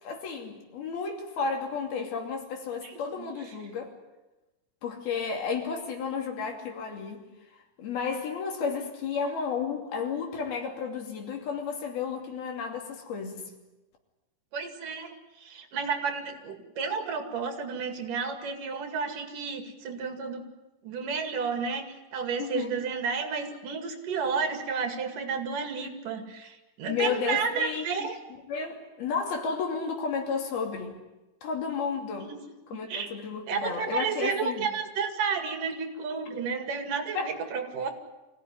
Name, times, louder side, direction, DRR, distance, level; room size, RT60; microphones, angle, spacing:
voice 1, 0.0-3.9 4.8-7.3 7.8-13.5 22.4-22.7 26.9-28.1 28.5-30.9 31.4-32.3 32.7-34.7 37.1-37.3, left 5 dB, 85° left, 2 dB, 4.7 m, -32 dB
voice 2, 2.8-3.3 14.5-20.5 20.8-21.9 22.1-28.2 32.9-33.1 33.5-37.9, right 5 dB, 65° right, 6 dB, 3.6 m, -31 dB
25.5 x 16.5 x 9.9 m, 1.1 s
omnidirectional pair, 4.3 m